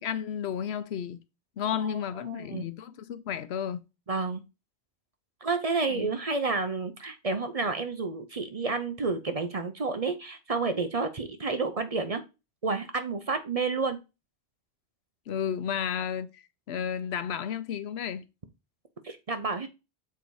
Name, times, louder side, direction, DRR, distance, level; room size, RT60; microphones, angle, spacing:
voice 1, 0.0-1.2 1.6-3.8 5.9-6.1 15.3-18.2, left 8 dB, 80° left, 0.9 m, -32 dB
voice 2, 2.3-2.7 4.1-4.4 5.4-12.2 12.6-14.0 19.0-19.7, right 4 dB, 40° right, 0.7 m, -30 dB
6.8 x 3.9 x 4.7 m
omnidirectional pair, 1.1 m